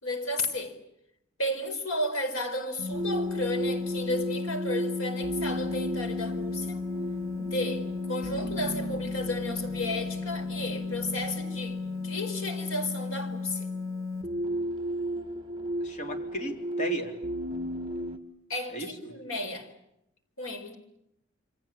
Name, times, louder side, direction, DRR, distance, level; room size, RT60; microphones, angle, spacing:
voice 1, 0.0-0.8 1.4-6.8 7.4-11.8 12.0-13.7 18.5-19.7 20.4-20.8, left 1 dB, 75° left, 4.5 m, -33 dB
sound 1, 2.8-14.2, left 4 dB, 10° left, 7.0 m, -35 dB
sound 2, 2.9-18.2, equal, 20° right, 1.9 m, -35 dB
voice 2, 15.8-17.1 18.7-18.9, right 1 dB, 35° left, 3.9 m, -35 dB
28.5 x 24.0 x 8.7 m
head